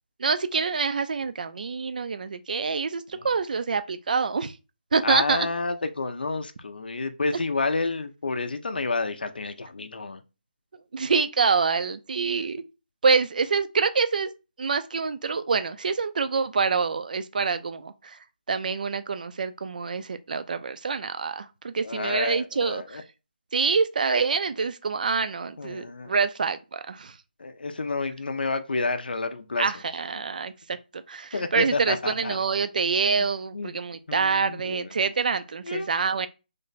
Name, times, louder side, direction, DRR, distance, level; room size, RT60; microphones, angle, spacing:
voice 1, 0.2-4.5 4.9-5.5 10.9-12.6 13.0-14.3 14.6-18.2 18.5-23.0 23.5-27.1 29.6-36.3, right 5 dB, 55° right, 0.4 m, -26 dB
voice 2, 5.0-10.2 12.3-12.5 21.8-23.0 25.6-26.1 27.4-29.6 31.3-32.4 33.2-33.7 34.1-34.9 35.6-35.9, left 3 dB, 75° left, 0.5 m, -30 dB
3.2 x 2.1 x 3.9 m
figure-of-eight pair, 160°, 5 cm